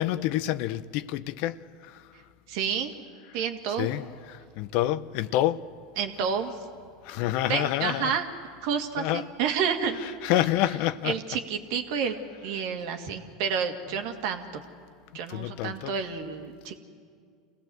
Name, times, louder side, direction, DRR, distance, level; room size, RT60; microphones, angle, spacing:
voice 1, 0.0-2.1 3.8-5.6 7.0-8.2 9.0-9.3 10.0-11.2 15.3-15.9, left 14 dB, 60° left, 0.7 m, -28 dB
voice 2, 2.5-2.9 3.3-3.9 6.0-6.6 7.5-8.3 8.6-10.0 11.0-12.2 12.4-14.6 15.1-16.8, right 7 dB, 65° right, 2.0 m, -29 dB
27.0 x 17.5 x 7.8 m
hypercardioid pair, 100°, 2 cm